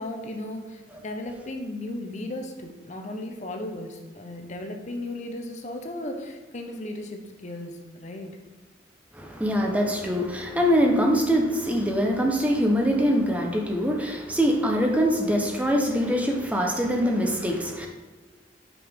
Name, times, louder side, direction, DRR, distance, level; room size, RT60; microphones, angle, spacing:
voice 1, 0.0-8.3, left 1 dB, 40° left, 4 dB, 0.6 m, -35 dB
voice 2, 9.1-17.9, equal, 10° right, 1 dB, 0.7 m, -23 dB
6.0 x 5.6 x 3.5 m, 1.3 s
head